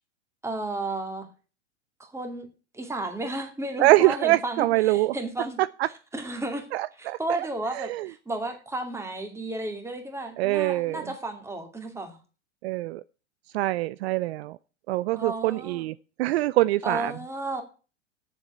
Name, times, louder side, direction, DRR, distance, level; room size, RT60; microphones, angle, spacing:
voice 1, 0.4-1.3 2.0-2.5 2.7-5.6 6.1-6.7 7.0-12.2 15.1-15.8 16.8-17.6, right 2 dB, 5° right, 4 dB, 2.3 m, -33 dB
voice 2, 3.8-5.2 6.7-7.5 7.7-8.1 10.4-11.0 12.6-13.0 13.5-14.6 14.9-17.1, right 17 dB, 60° right, 16 dB, 0.5 m, -24 dB
7.3 x 7.1 x 8.1 m, 0.36 s
hypercardioid pair, 115°, 36 cm